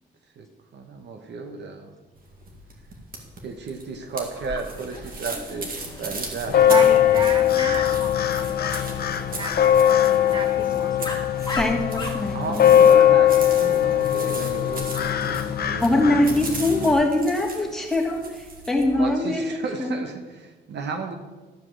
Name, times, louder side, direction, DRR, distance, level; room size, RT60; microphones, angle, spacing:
voice 1, 0.7-1.9 3.4-6.9 9.3-9.9 12.3-16.3 19.0-21.1, right 4 dB, 60° right, 5 dB, 1.2 m, -34 dB
sound 1, 2.2-18.8, right 2 dB, 45° right, 2.3 m, -39 dB
Dog, 4.3-14.9, left 3 dB, 20° left, 2.2 m, -40 dB
sound 2, 6.5-16.9, left 10 dB, 50° left, 0.8 m, -20 dB
voice 2, 6.7-8.5 9.3-9.6 10.3-11.2, right 3 dB, 25° right, 6 dB, 0.8 m, -31 dB
voice 3, 11.5-12.9 15.8-19.4 19.8-19.9, left 1 dB, ahead, -3 dB, 2.7 m, -23 dB
13.0 x 4.9 x 7.5 m, 1.3 s
cardioid pair, 90°, 20 cm